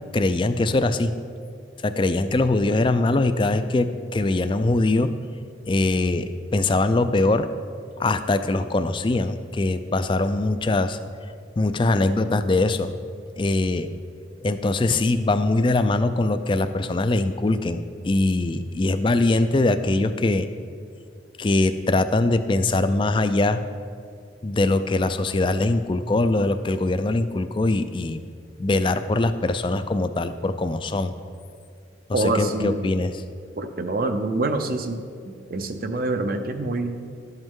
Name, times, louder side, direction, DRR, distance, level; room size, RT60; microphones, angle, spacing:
voice 1, 0.1-1.1 1.8-5.1 5.6-7.5 8.0-11.0 11.6-12.9 13.4-13.9 14.4-20.5 21.4-23.6 24.4-28.2 28.6-31.1 32.1-33.2, left 2 dB, 25° left, 11 dB, 0.3 m, -22 dB
voice 2, 32.1-32.9 33.6-35.0 35.5-37.0, right 2 dB, 50° right, 7 dB, 0.6 m, -25 dB
12.0 x 8.0 x 3.7 m, 2.2 s
head